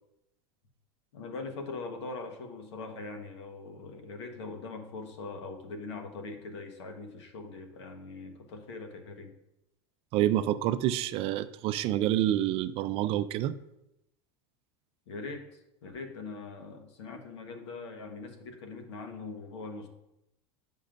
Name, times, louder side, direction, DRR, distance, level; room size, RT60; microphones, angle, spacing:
voice 1, 1.1-9.3 15.1-19.9, left 3 dB, 90° left, 4 dB, 1.2 m, -42 dB
voice 2, 10.1-13.6, right 12 dB, 45° right, 13 dB, 0.4 m, -28 dB
10.0 x 5.3 x 2.6 m, 0.89 s
supercardioid pair, 130°, 14 cm